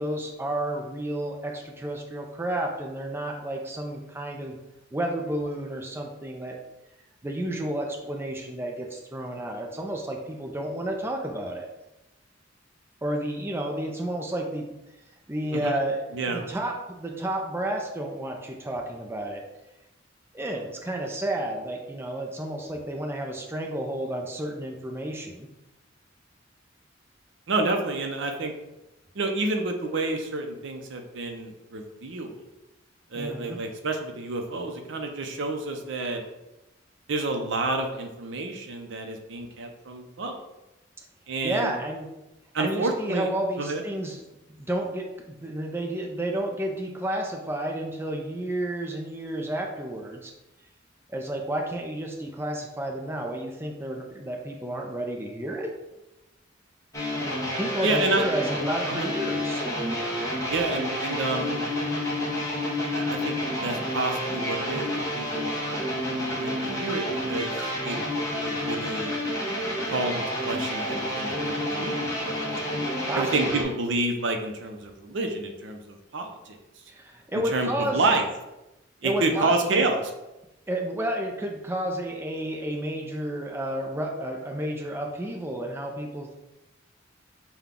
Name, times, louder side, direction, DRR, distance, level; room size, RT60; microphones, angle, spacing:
voice 1, 0.0-4.6 4.9-6.6 7.2-11.7 13.0-14.7 15.3-19.4 20.3-25.5 33.1-33.6 41.4-42.1 42.6-44.2 44.6-50.3 51.1-55.7 57.6-59.9 73.0-73.7 76.9-78.0 79.0-79.8 80.7-86.3, right 1 dB, 10° right, 1 dB, 0.5 m, -31 dB
voice 2, 27.5-28.5 29.2-32.3 33.1-36.2 37.1-40.4 41.3-41.7 42.5-43.3 43.6-43.8 57.8-58.2 58.9-59.1 60.5-61.6 62.9-65.9 66.4-68.0 68.4-69.1 69.8-72.8 73.1-76.6 77.5-78.3 79.0-80.0, right 2 dB, 70° right, 4 dB, 0.6 m, -29 dB
sound 1, 56.9-73.6, left 1 dB, 15° left, 0.8 m, -29 dB
5.7 x 2.3 x 3.6 m, 0.96 s
head